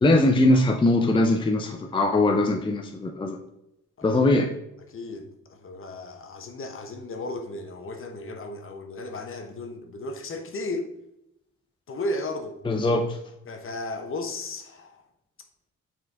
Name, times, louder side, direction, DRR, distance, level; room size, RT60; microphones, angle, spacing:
voice 1, 0.0-3.4 4.0-4.5 12.6-13.2, left 2 dB, 15° left, 0.6 m, -21 dB
voice 2, 4.9-10.9 11.9-12.6 13.5-15.0, left 2 dB, 45° left, 1.1 m, -34 dB
6.7 x 4.3 x 3.5 m
cardioid pair, 90°, 30 cm